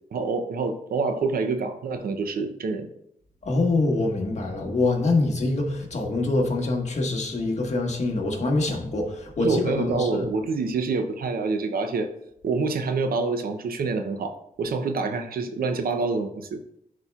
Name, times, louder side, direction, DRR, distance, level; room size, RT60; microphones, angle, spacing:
voice 1, 0.1-2.9 8.7-8.8 9.4-12.1 12.4-16.6, right 4 dB, 85° right, 6 dB, 0.7 m, -27 dB
voice 2, 3.4-10.2, left 2 dB, 50° left, 0 dB, 1.5 m, -25 dB
11.0 x 4.3 x 2.4 m, 0.76 s
wide cardioid pair, 90°, 15 cm